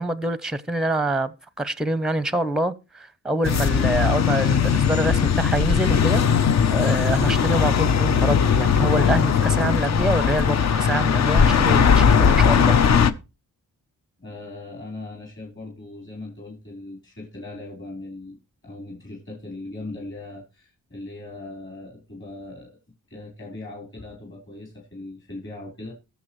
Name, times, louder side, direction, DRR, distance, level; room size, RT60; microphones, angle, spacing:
voice 1, 0.0-12.7, right 1 dB, ahead, 0.7 m, -26 dB
sound 1, 3.4-13.1, left 7 dB, 55° left, 0.7 m, -19 dB
voice 2, 14.2-18.4 18.6-22.7 23.1-25.9, left 2 dB, 35° left, 3.9 m, -39 dB
21.0 x 7.1 x 3.1 m
wide cardioid pair, 120°, 33 cm